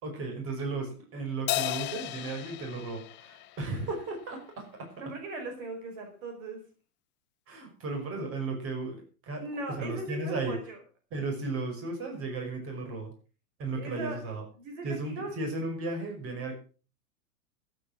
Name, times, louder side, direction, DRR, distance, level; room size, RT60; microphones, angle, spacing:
voice 1, 0.0-4.9 7.5-10.6 11.1-13.1 13.6-14.4 14.8-16.5, right 3 dB, 30° right, 4 dB, 5.6 m, -35 dB
Crash cymbal, 1.5-4.2, left 17 dB, 25° left, 0.7 m, -35 dB
voice 2, 5.0-6.6 8.0-8.1 9.4-10.8 13.8-14.2 14.6-15.3, right 3 dB, 60° right, 5 dB, 5.1 m, -39 dB
15.5 x 9.2 x 6.1 m, 0.37 s
hypercardioid pair, 125°, 44 cm